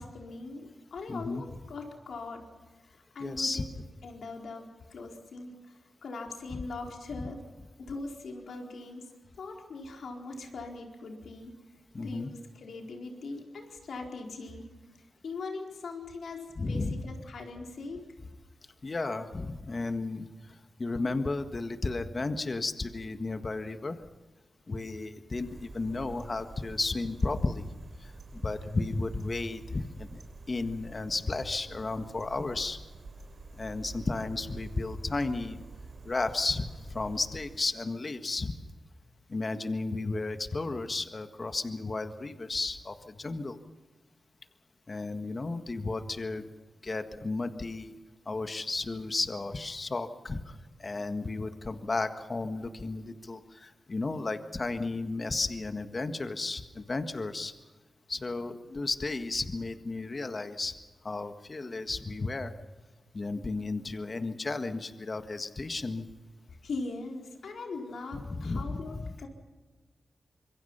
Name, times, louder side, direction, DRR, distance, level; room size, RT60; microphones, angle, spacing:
voice 1, 0.0-2.5 2.9-3.7 4.0-5.7 6.0-7.4 7.9-9.1 9.4-11.5 12.0-14.7 15.2-18.1 66.6-69.3, left 3 dB, 80° left, 2 dB, 4.4 m, -41 dB
voice 2, 1.1-1.4 3.2-3.8 6.5-6.6 11.9-12.3 16.6-17.0 18.8-20.3 20.8-24.0 24.7-27.6 28.0-30.2 30.5-32.8 33.6-35.6 36.0-38.5 39.3-43.6 44.9-46.5 46.8-47.9 48.2-57.5 58.1-60.7 61.0-62.5 63.1-66.1 68.1-69.1, left 3 dB, 40° left, 8 dB, 1.7 m, -33 dB
sound 1, 25.4-37.6, right 3 dB, 70° right, 4.0 m, -48 dB
26.5 x 23.0 x 5.7 m, 1.3 s
cardioid pair, 70°, 0 cm